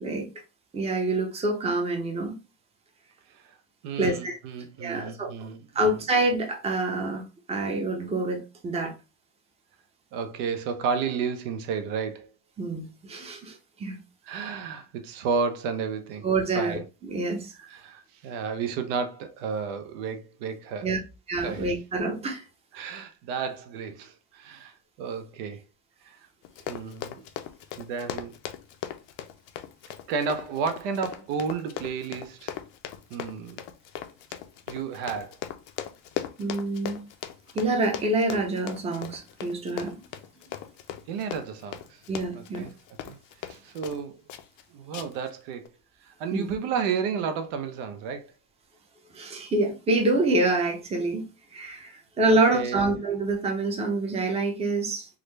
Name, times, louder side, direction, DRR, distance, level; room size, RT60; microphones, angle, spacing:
voice 1, 0.7-2.3 4.0-4.4 4.8-5.5 5.7-7.2 7.5-8.9 12.6-14.0 16.2-17.5 20.8-21.0 21.3-22.4 36.4-37.0 37.5-40.0 42.1-42.7 46.3-46.5 49.1-51.2 51.5-55.1, right 2 dB, 15° right, 0.6 m, -26 dB
voice 2, 3.8-6.0 10.1-12.3 14.3-16.3 16.5-16.8 17.5-20.9 21.4-21.7 22.7-25.6 26.0-26.2 26.7-27.2 27.8-28.3 30.1-32.6 33.1-33.6 34.7-35.4 41.1-42.0 42.3-42.7 43.1-43.2 43.5-44.2 44.7-45.7 46.0-48.3 52.3-52.9, right 6 dB, 75° right, 0.8 m, -32 dB
Run, 26.4-44.0 44.3-44.6 44.9-45.3 45.6-45.7, left 11 dB, 70° left, 0.6 m, -38 dB
3.7 x 2.1 x 3.2 m
cardioid pair, 140°, 46 cm